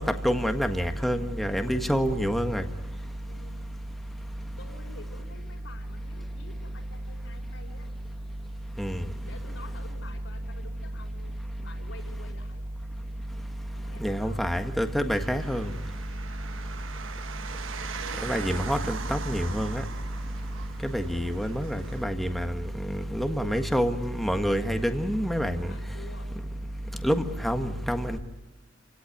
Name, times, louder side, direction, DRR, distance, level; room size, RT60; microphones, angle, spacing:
voice 1, 0.0-2.6 8.8-9.0 14.0-15.7 18.2-19.8 20.8-25.7 27.0-28.2, equal, ahead, 1.5 m, -27 dB
voice 2, 3.3-3.8 4.6-7.9 9.2-12.6 13.7-14.4 15.4-15.6 16.0-17.2 17.9-18.3 23.3-23.7 25.6-26.3, left 2 dB, 75° left, 5.1 m, -49 dB
sound 1, 15.1-22.0, right 5 dB, 85° right, 1.2 m, -40 dB
28.5 x 17.5 x 9.4 m
head